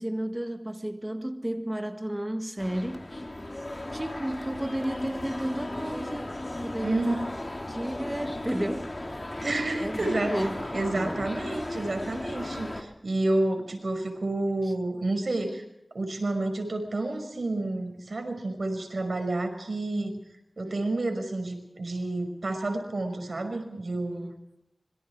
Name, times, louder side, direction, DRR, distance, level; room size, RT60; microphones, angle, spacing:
voice 1, 0.0-3.0 3.9-6.3 6.6-7.3 7.7-9.4 9.8-10.6 10.9-11.3 14.6-14.7 20.6-20.7 24.1-24.3, right 1 dB, 15° right, 1.6 m, -33 dB
sound 1, 2.6-12.8, left 1 dB, 35° left, 3.5 m, -36 dB
voice 2, 6.8-7.1 9.4-10.4 10.7-15.6 15.9-20.2 20.6-24.3, right 2 dB, 80° right, 5.7 m, -29 dB
26.0 x 23.5 x 4.9 m
wide cardioid pair, 65°, 0 cm